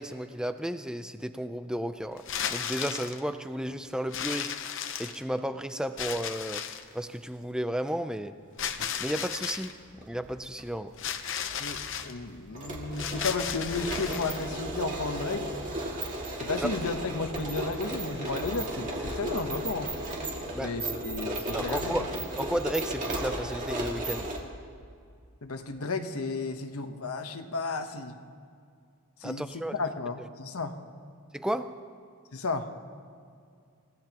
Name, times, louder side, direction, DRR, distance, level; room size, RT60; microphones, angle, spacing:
voice 1, 0.0-4.5 5.0-6.6 6.9-8.4 9.0-10.9 20.5-20.8 21.5-22.1 22.4-24.3 29.2-29.7 30.2-30.3 31.3-31.8, equal, 5° right, 9 dB, 0.5 m, -33 dB
sound 1, 2.2-3.2 4.1-5.4 6.0-6.9 8.6-9.7 11.0-12.1 12.9-14.5, left 8 dB, 55° left, 0.8 m, -34 dB
sound 2, 8.6-8.8 9.9-10.6 10.9-11.0 11.4-24.4, right 1 dB, 35° right, 2.3 m, -35 dB
voice 2, 11.6-15.5 16.4-19.9 20.6-22.1 25.4-28.2 29.2-30.8 32.3-32.7, left 3 dB, 80° left, 6 dB, 1.1 m, -33 dB
29.0 x 16.5 x 3.0 m, 2.3 s
head